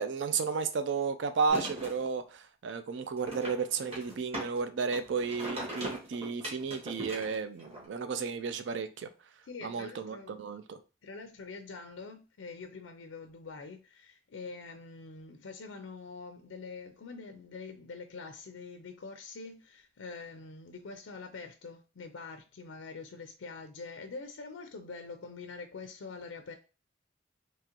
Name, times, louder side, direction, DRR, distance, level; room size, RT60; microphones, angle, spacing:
voice 1, 0.0-9.1 9.6-10.8, right 5 dB, 70° right, 0.4 m, -33 dB
sound 1, 1.5-2.0 3.2-4.6 4.9-7.8, right 1 dB, 30° right, 1.4 m, -40 dB
voice 2, 9.4-10.4 11.0-26.5, left 4 dB, 90° left, 0.5 m, -45 dB
3.7 x 2.9 x 2.9 m
head